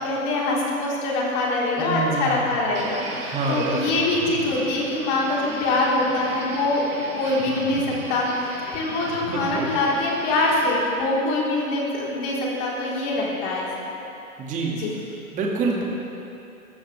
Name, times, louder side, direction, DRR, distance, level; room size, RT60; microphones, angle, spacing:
voice 1, 0.0-6.9 7.1-8.3 8.7-13.7 14.8-14.9, left 2 dB, 35° left, -5 dB, 4.0 m, -24 dB
voice 2, 1.8-2.5 3.3-3.9 9.3-9.7 14.4-14.8 15.3-15.8, right 3 dB, 15° right, -2 dB, 2.1 m, -27 dB
sound 1, 2.7-10.8, right 2 dB, 70° right, 3.5 m, -36 dB
22.5 x 14.5 x 3.4 m, 2.8 s
hypercardioid pair, 135°, 44 cm